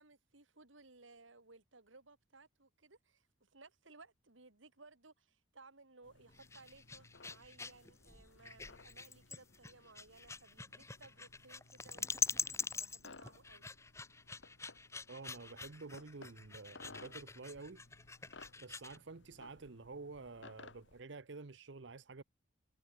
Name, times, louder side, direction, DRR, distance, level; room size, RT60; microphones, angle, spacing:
voice 1, 0.0-13.7, right 3 dB, 80° right, 3.0 m, -61 dB
sound 1, 6.0-21.0, left 3 dB, 65° left, 1.6 m, -60 dB
sound 2, 6.3-19.0, left 4 dB, 15° left, 1.2 m, -44 dB
voice 2, 15.1-17.8 18.6-22.2, right 3 dB, 65° right, 0.8 m, -50 dB
head